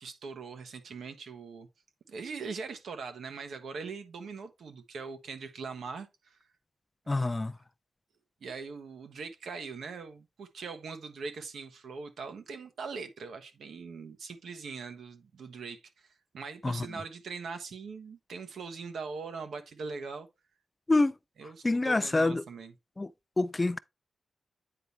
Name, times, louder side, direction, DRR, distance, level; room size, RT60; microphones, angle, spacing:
voice 1, 0.0-1.7 2.1-6.4 8.4-20.3 21.4-22.7, right 4 dB, 80° right, 1.2 m, -41 dB
voice 2, 7.1-7.6 16.6-16.9 20.9-21.2 21.6-22.4 23.0-23.1 23.4-23.8, left 2 dB, 20° left, 0.3 m, -26 dB
9.0 x 4.2 x 3.3 m
wide cardioid pair, 120°, 0 cm